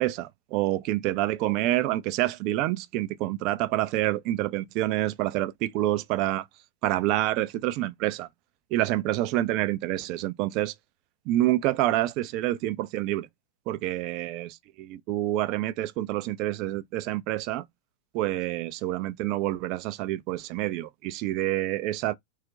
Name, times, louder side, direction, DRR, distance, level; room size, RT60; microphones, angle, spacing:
voice 1, 0.0-6.4 6.8-8.3 8.7-10.7 11.3-13.3 13.7-17.6 18.1-22.1, right 15 dB, 40° right, 0.3 m, -27 dB
2.3 x 2.1 x 3.8 m
figure-of-eight pair, 90°, 0 cm